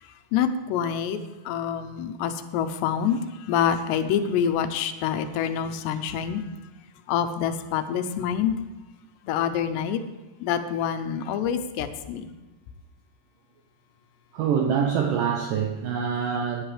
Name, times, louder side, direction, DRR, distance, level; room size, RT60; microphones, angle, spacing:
voice 1, 0.3-1.2 1.5-3.2 3.5-6.4 7.1-8.6 9.2-10.0 10.4-12.3, left 8 dB, 85° left, 9 dB, 2.9 m, -26 dB
voice 2, 14.3-16.6, right 7 dB, 80° right, 3 dB, 1.9 m, -25 dB
16.5 x 10.0 x 3.3 m, 1.1 s
omnidirectional pair, 4.9 m